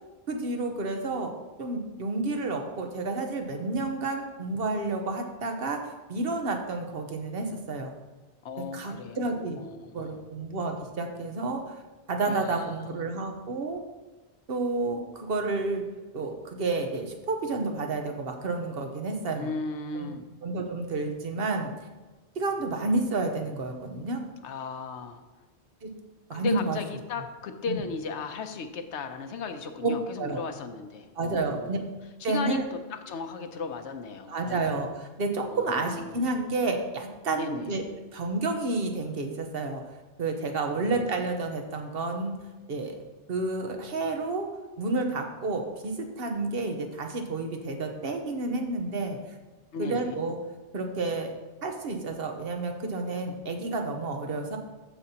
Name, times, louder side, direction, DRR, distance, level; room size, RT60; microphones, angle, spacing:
voice 1, 0.3-1.3 1.6-7.9 8.7-9.6 9.9-11.8 12.1-13.8 14.5-15.8 16.1-19.5 19.9-21.7 22.4-24.2 25.8-25.9 26.3-26.8 27.7-27.8 29.8-29.9 30.2-30.4 31.1-31.8 32.2-32.6 34.3-37.8 38.1-39.8 40.2-42.4 42.7-43.0 43.3-44.5 44.8-49.2 49.8-50.4 50.7-51.3 51.6-54.6, right 3 dB, 60° right, 4 dB, 1.1 m, -30 dB
voice 2, 8.4-10.2 12.3-12.6 19.3-20.2 24.4-25.2 26.3-31.8 32.3-34.6 35.5-36.2 37.4-37.7 40.8-41.0 49.7-50.2, left 4 dB, 80° left, 7 dB, 1.0 m, -36 dB
13.0 x 5.3 x 2.8 m, 1.2 s
omnidirectional pair, 1.2 m